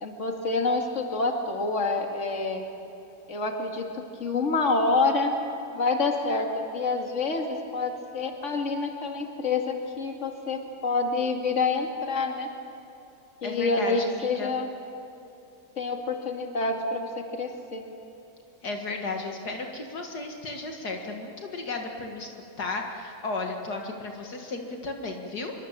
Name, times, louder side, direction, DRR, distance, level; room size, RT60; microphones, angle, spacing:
voice 1, 0.0-2.6 3.3-5.3 5.7-12.5 13.4-14.7 15.8-17.8, left 3 dB, 45° left, 2 dB, 2.5 m, -27 dB
voice 2, 13.4-14.5 18.6-22.3 22.6-25.5, left 3 dB, 70° left, 2 dB, 2.3 m, -34 dB
26.5 x 23.5 x 7.4 m, 2.8 s
omnidirectional pair, 1.8 m